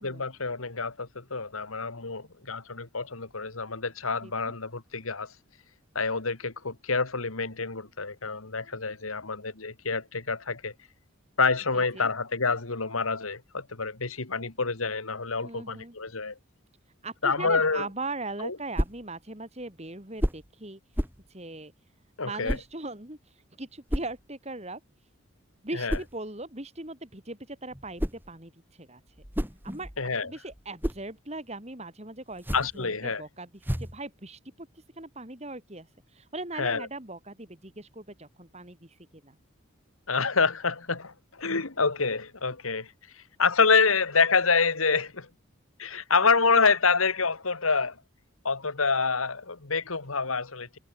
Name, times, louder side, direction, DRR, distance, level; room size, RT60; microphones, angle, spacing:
voice 1, 0.0-5.3 5.9-10.7 11.4-16.3 17.2-17.9 18.4-18.6 22.2-22.6 25.7-26.0 30.0-30.3 32.5-33.2 36.6-36.9 40.1-42.9 43.4-45.3 45.8-48.0 48.4-50.7, left 4 dB, 85° left, 2.2 m, -27 dB
voice 2, 4.2-4.5 11.7-12.1 15.4-16.0 17.0-20.8 21.3-21.7 22.2-24.8 25.6-29.2 29.6-29.9 30.2-39.4, right 2 dB, 30° right, 3.5 m, -40 dB
sound 1, 18.7-19.1 20.2-20.5 20.9-21.3 22.5-22.7 23.9-24.2 25.9-26.2 27.7-28.3 29.1-30.1 30.5-31.1 32.3-32.8 33.6-34.0, equal, 10° right, 3.0 m, -31 dB
head